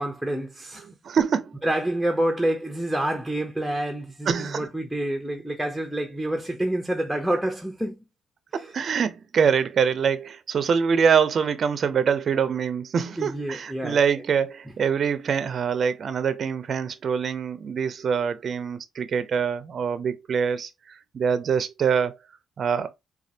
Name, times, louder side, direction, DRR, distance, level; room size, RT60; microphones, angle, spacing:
voice 1, 0.0-0.9 1.6-8.0 8.5-8.7 13.2-14.0, right 1 dB, ahead, 0.6 m, -27 dB
voice 2, 1.0-1.6 4.3-4.7 8.5-22.2 22.6-22.9, right 6 dB, 55° right, 0.4 m, -24 dB
4.2 x 2.3 x 2.6 m
cardioid pair, 90°, 0 cm